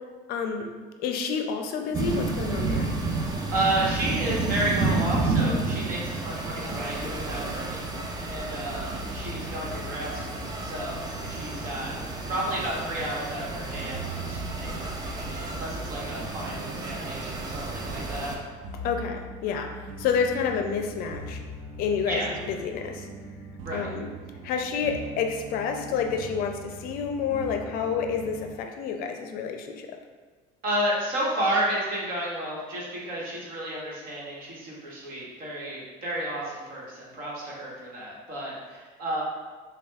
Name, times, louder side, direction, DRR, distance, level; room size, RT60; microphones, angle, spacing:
voice 1, 0.3-0.7 1.0-2.9 18.7-21.4 21.8-23.1 23.7-24.1 24.4-30.0, left 6 dB, 60° left, 4 dB, 0.5 m, -29 dB
sound 1, 1.9-18.4, right 3 dB, 20° right, 0.5 m, -31 dB
voice 2, 3.5-7.8 8.3-11.9 12.3-18.3 22.1-22.3 23.6-23.9 30.6-39.2, right 1 dB, 55° right, -4 dB, 1.3 m, -32 dB
sound 2, 8.7-28.5, right 2 dB, 80° right, 0.5 m, -42 dB
6.0 x 2.3 x 2.4 m, 1.4 s
supercardioid pair, 95°, 17 cm